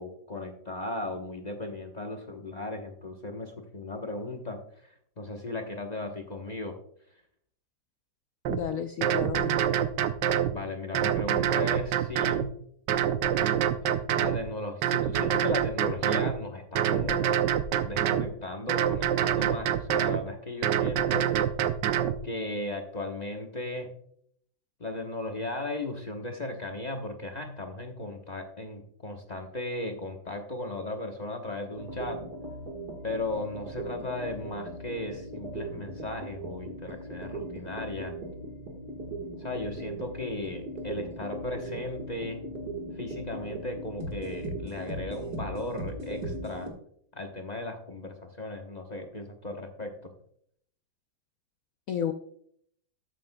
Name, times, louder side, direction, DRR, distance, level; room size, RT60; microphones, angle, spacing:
voice 1, 0.0-6.8 10.5-12.5 13.9-17.3 17.8-21.4 22.2-24.0 24.8-32.2 33.0-38.2 39.4-42.4 42.9-46.7 47.1-50.1, left 2 dB, 35° left, 3 dB, 0.7 m, -36 dB
voice 2, 8.5-9.7 51.9-52.1, left 8 dB, 80° left, 7 dB, 0.7 m, -32 dB
sound 1, 8.5-8.6 9.0-10.5 10.9-12.5 12.9-14.4 14.8-16.3 16.8-18.3 18.7-20.2 20.6-22.2, right 10 dB, 70° right, 1.2 m, -26 dB
sound 2, 31.8-46.7, right 1 dB, 50° right, 2.0 m, -39 dB
13.0 x 8.5 x 2.2 m, 0.65 s
omnidirectional pair, 2.2 m